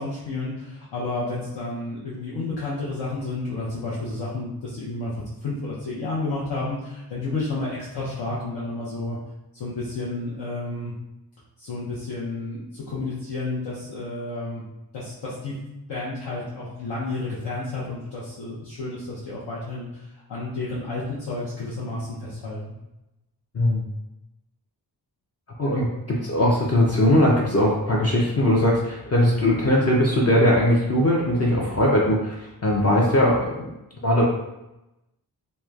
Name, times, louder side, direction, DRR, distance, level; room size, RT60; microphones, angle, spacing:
voice 1, 0.0-5.1 5.4-9.2 9.5-10.9 11.6-14.6 14.9-15.5 15.9-22.6, left 2 dB, 75° left, -7 dB, 0.7 m, -31 dB
voice 2, 25.6-33.7 34.0-34.2, left 1 dB, 40° left, -3 dB, 0.5 m, -20 dB
3.0 x 2.1 x 2.3 m, 0.95 s
cardioid pair, 75°, 41 cm